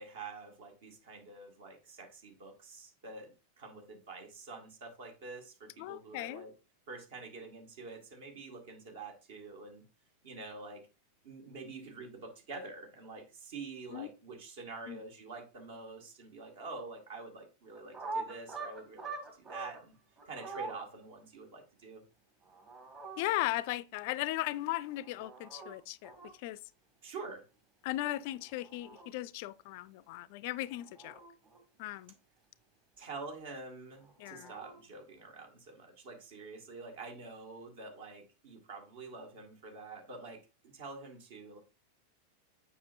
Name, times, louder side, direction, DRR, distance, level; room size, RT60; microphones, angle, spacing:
voice 1, 0.0-6.5 6.9-9.8 10.2-10.9 11.2-20.0 20.3-22.0 27.0-27.4 33.0-41.6, right 3 dB, 55° right, 1.9 m, -47 dB
voice 2, 5.8-6.4 13.9-14.1 14.9-15.0 23.2-26.1 26.4-26.6 27.8-31.2 31.8-32.1 34.2-34.5, left 16 dB, 50° left, 0.4 m, -37 dB
sound 1, 17.7-19.8 20.2-20.8 22.4-23.2 24.9-25.7 26.0-26.3 28.4-29.1 30.6-31.6 34.0-34.8, right 3 dB, 25° right, 2.1 m, -44 dB
7.3 x 5.6 x 2.6 m
figure-of-eight pair, 90°, 0 cm